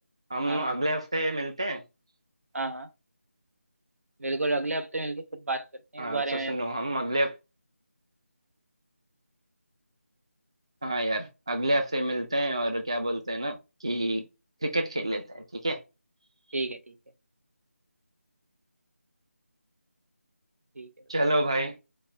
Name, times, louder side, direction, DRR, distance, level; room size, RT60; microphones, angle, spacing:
voice 1, 0.3-1.8 6.0-7.4 10.8-14.2 14.6-15.8 21.1-21.8, right 1 dB, 20° right, 0.3 m, -28 dB
voice 2, 2.5-2.9 4.2-5.7 5.9-6.5 16.5-17.0 20.8-20.9, right 2 dB, 70° right, 1.1 m, -31 dB
4.6 x 2.3 x 4.6 m
figure-of-eight pair, 175°, 8 cm